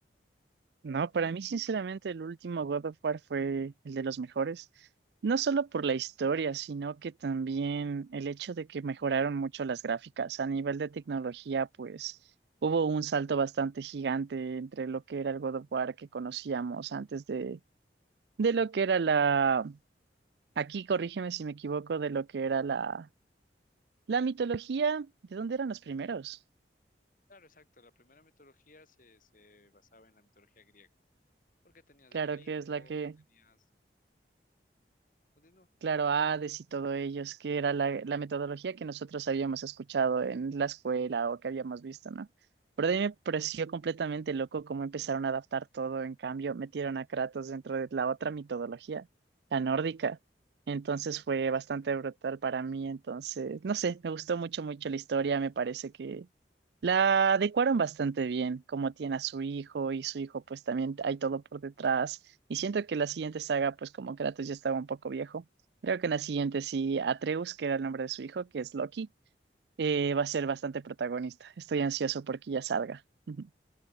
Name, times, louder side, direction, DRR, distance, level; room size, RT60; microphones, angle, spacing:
voice 1, 0.8-4.6 5.2-12.2 12.6-17.6 18.4-19.8 20.6-23.1 24.1-26.4 32.1-33.1 35.8-42.3 42.8-49.1 49.5-50.2 50.7-56.3 56.8-62.2 62.5-65.4 65.8-69.1 69.8-73.0 73.3-73.5, right 5 dB, 70° right, 0.4 m, -31 dB
voice 2, 27.3-30.9 31.6-33.0 33.3-33.7 35.3-35.7 50.9-52.0, left 3 dB, 50° left, 3.2 m, -61 dB
open air
head